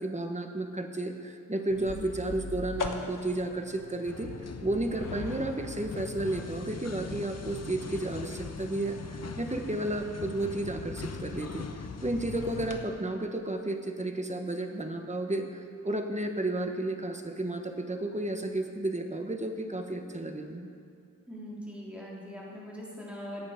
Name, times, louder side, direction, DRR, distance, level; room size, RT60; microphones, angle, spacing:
voice 1, 0.0-4.3 4.6-20.7, right 2 dB, 20° right, 4 dB, 1.2 m, -32 dB
sound 1, 1.7-12.9, left 4 dB, 65° left, 1.1 m, -43 dB
sound 2, 4.1-12.8, left 5 dB, 50° left, 0.7 m, -41 dB
voice 2, 21.3-23.4, equal, 5° right, -6 dB, 3.3 m, -41 dB
18.0 x 8.8 x 5.1 m, 2.5 s
wide cardioid pair, 90°, 34 cm